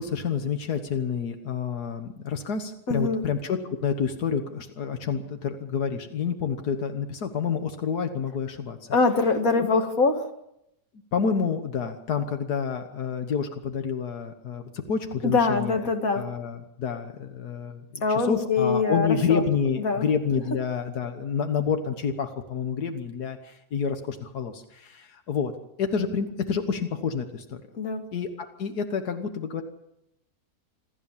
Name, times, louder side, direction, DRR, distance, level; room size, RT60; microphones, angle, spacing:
voice 1, 0.0-8.8 9.6-9.7 11.1-15.8 16.1-18.0 18.3-25.5 25.8-27.6 28.1-29.6, left 6 dB, 90° left, 7 dB, 1.9 m, -28 dB
voice 2, 2.9-3.2 8.9-10.3 15.2-16.2 18.0-19.4 19.8-20.1 27.7-28.0, left 4 dB, 65° left, 5 dB, 2.4 m, -23 dB
26.5 x 13.5 x 7.4 m, 0.83 s
omnidirectional pair, 1.6 m